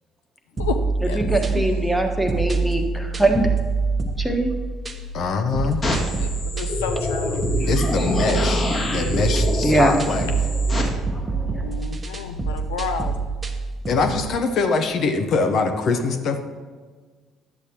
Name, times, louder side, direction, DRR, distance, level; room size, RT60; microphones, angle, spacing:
sound 1, 0.6-14.3, right 4 dB, 30° right, 0.9 m, -26 dB
voice 1, 1.0-3.4 4.2-4.5 9.6-10.0 10.8-11.8, right 1 dB, ahead, 4 dB, 1.3 m, -22 dB
voice 2, 5.1-5.8 7.7-8.7 8.9-10.3 13.9-16.4, left 4 dB, 60° left, 7 dB, 0.7 m, -23 dB
sound 2, 5.8-10.8, left 2 dB, 35° left, 2.0 m, -26 dB
voice 3, 6.2-7.3 11.6-13.1, left 7 dB, 90° left, 7 dB, 0.4 m, -30 dB
10.5 x 8.0 x 2.9 m, 1.4 s
hypercardioid pair, 60°, 0 cm